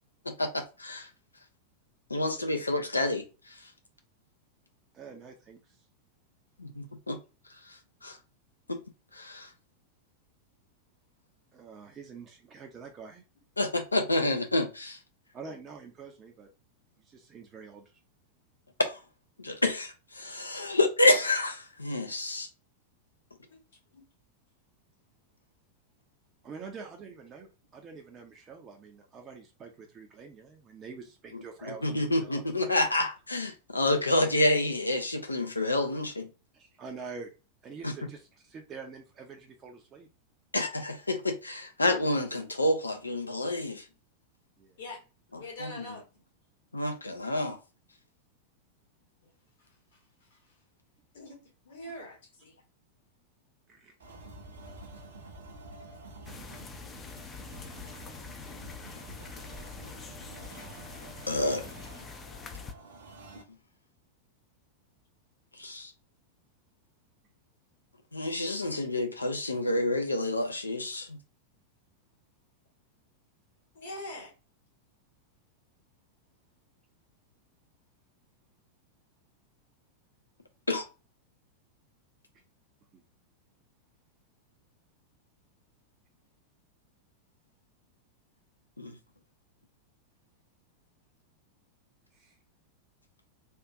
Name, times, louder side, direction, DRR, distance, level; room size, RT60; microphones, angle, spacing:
voice 1, 0.2-1.1 2.1-3.7 6.6-7.2 7.6-8.2 8.7-8.8 9.1-9.5 13.6-15.0 18.8-19.0 19.4-22.5 31.6-36.3 37.8-38.1 40.5-43.9 45.3-46.0 46.7-47.6 61.3-61.7 65.6-65.9 68.1-71.2 80.7-80.8 88.8-89.0, left 2 dB, 80° left, 0.6 m, -29 dB
voice 2, 4.9-5.8 11.5-13.2 15.3-16.5 17.0-17.8 26.4-32.7 35.8-35.9 36.5-37.3 37.6-40.1 44.6-44.8 53.7-53.9 82.9-83.0 92.1-92.3, right 5 dB, 25° right, 0.6 m, -46 dB
voice 3, 45.4-46.0 49.2-49.3 51.1-51.4 51.6-52.6 58.5-59.0 73.7-74.3, left 1 dB, 60° left, 1.5 m, -43 dB
sound 1, 54.0-63.4, right 2 dB, 65° right, 0.7 m, -48 dB
sound 2, 56.2-62.7, left 5 dB, 20° left, 0.5 m, -45 dB
3.6 x 2.5 x 2.4 m
figure-of-eight pair, 90°, 0 cm